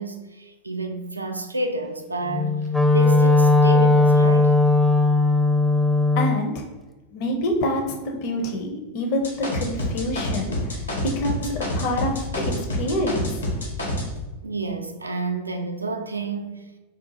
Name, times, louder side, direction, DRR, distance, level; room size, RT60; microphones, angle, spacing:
voice 1, 0.0-2.7 2.9-4.6 8.3-8.4 14.4-16.6, right 2 dB, 80° right, 0.4 m, -29 dB
Wind instrument woodwind instrument, 2.3-6.4, left 2 dB, ahead, 0.4 m, -18 dB
voice 2, 6.2-6.6 7.1-13.4, left 1 dB, 45° left, 0.6 m, -27 dB
sound 1, 9.2-14.1, left 1 dB, 80° left, 0.9 m, -27 dB
3.7 x 2.3 x 4.1 m
figure-of-eight pair, 90°, 0 cm